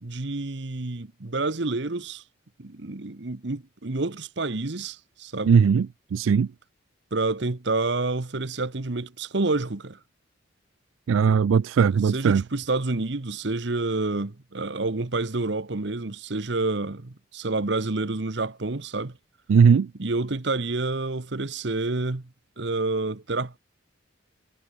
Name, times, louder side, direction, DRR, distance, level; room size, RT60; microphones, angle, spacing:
voice 1, 0.0-2.2 2.6-5.6 7.1-10.0 12.0-19.2 20.0-22.3 22.6-23.6, right 3 dB, 60° right, 1.1 m, -28 dB
voice 2, 5.5-6.5 11.1-12.4 19.5-19.9, right 6 dB, 90° right, 0.4 m, -19 dB
head